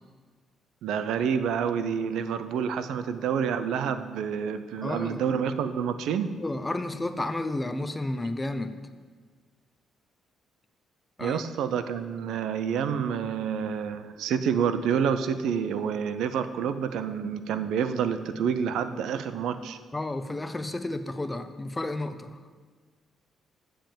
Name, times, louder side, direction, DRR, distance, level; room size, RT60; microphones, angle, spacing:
voice 1, 0.8-6.3 11.2-19.8, right 7 dB, 80° right, 11 dB, 0.6 m, -28 dB
voice 2, 4.8-5.3 6.4-8.7 11.2-11.4 19.9-22.4, left 2 dB, 15° left, 10 dB, 0.7 m, -32 dB
7.6 x 6.9 x 7.5 m, 1.5 s
cardioid pair, 90°, 0 cm